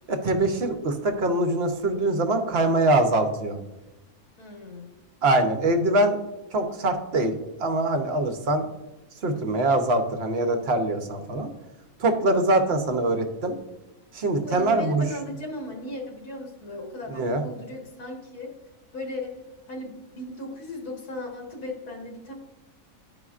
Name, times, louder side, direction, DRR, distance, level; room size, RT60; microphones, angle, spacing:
voice 1, 0.1-3.6 5.2-6.2 6.5-8.7 9.2-11.5 12.0-13.5 14.1-15.0 17.1-17.4, right 2 dB, 50° right, 6 dB, 0.9 m, -23 dB
voice 2, 4.4-4.9 14.4-18.5 18.9-19.3 19.7-22.3, left 2 dB, 85° left, 0 dB, 2.0 m, -36 dB
12.0 x 5.0 x 2.4 m, 1.0 s
omnidirectional pair, 1.6 m